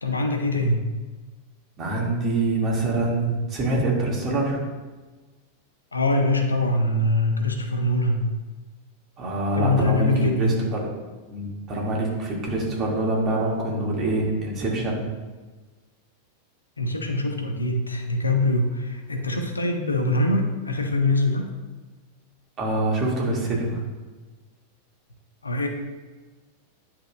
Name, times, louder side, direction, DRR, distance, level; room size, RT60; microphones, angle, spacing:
voice 1, 0.0-0.8 5.9-8.2 9.6-10.6 16.8-21.5 25.4-25.7, left 2 dB, 80° left, 4 dB, 0.8 m, -23 dB
voice 2, 1.8-4.6 9.2-10.9 11.3-15.0 22.6-23.8, right 2 dB, 30° right, -2 dB, 2.0 m, -25 dB
10.0 x 5.8 x 2.3 m, 1.3 s
figure-of-eight pair, 90°, 0 cm